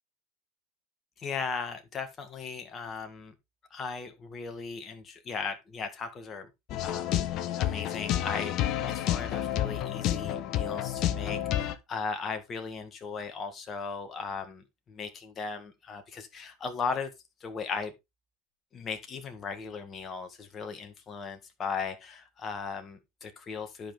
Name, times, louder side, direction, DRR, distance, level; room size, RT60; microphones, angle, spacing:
voice 1, 1.2-3.3 3.7-6.5 6.8-17.1 17.4-17.9 18.7-23.9, left 5 dB, 30° left, 1.7 m, -37 dB
sound 1, 6.7-11.7, left 12 dB, 50° left, 0.9 m, -30 dB
11.5 x 5.2 x 3.7 m
figure-of-eight pair, 80°, 0 cm